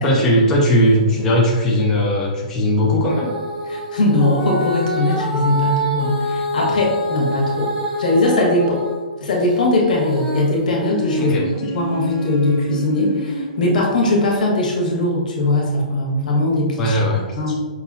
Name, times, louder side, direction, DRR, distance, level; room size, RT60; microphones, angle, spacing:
voice 1, 0.0-3.3 11.2-11.4 16.8-17.5, equal, 10° left, -3 dB, 0.4 m, -18 dB
Female singing, 3.1-9.0 9.4-13.7 14.3-14.4, equal, 5° right, 1.2 m, -26 dB
voice 2, 3.7-8.8 9.2-11.4 11.7-17.0 17.3-17.5, left 1 dB, 75° left, -2 dB, 1.4 m, -20 dB
5.4 x 3.0 x 2.6 m, 1.4 s
hypercardioid pair, 180°, 4 cm